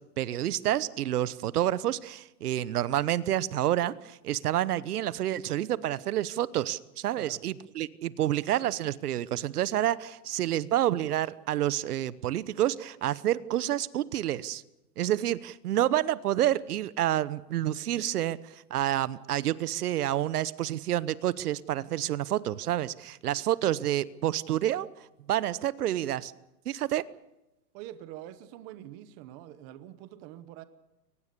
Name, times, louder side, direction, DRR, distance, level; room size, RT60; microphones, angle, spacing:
voice 1, 0.2-14.6 15.0-24.9 25.3-26.3 26.7-27.0, right 12 dB, 65° right, 18 dB, 1.0 m, -29 dB
voice 2, 27.7-30.6, right 13 dB, 20° right, 13 dB, 0.9 m, -45 dB
23.5 x 19.5 x 6.8 m, 0.95 s
hypercardioid pair, 160°, 49 cm